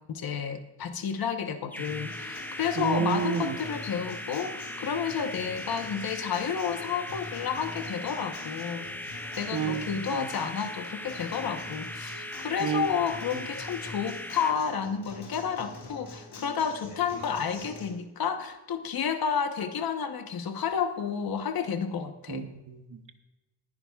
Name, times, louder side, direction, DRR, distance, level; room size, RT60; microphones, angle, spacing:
voice 1, 0.1-8.9 9.4-22.5, left 7 dB, 55° left, 7 dB, 1.0 m, -31 dB
sound 1, 1.7-14.5, left 1 dB, 5° left, 0.5 m, -39 dB
Acoustic guitar, 1.8-17.8, left 2 dB, 80° left, 4.1 m, -45 dB
voice 2, 2.8-3.6 9.5-10.3 12.6-12.9 13.3-13.5 22.3-23.2, right 7 dB, 45° right, 7 dB, 1.0 m, -31 dB
20.0 x 11.0 x 2.3 m, 1.1 s
wide cardioid pair, 160°, 43 cm